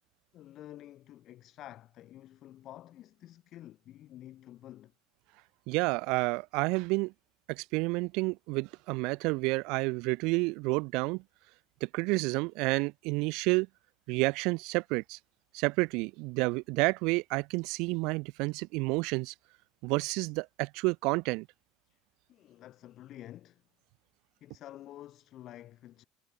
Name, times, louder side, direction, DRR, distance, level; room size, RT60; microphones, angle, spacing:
voice 1, 0.3-4.9 21.9-22.0 22.3-23.6 24.4-26.0, left 13 dB, 55° left, 6.0 m, -50 dB
voice 2, 5.7-7.1 7.5-11.2 11.8-13.7 14.1-15.2 15.5-19.3 19.8-21.5, right 26 dB, 75° right, 1.4 m, -30 dB
supercardioid pair, 95°, 0 cm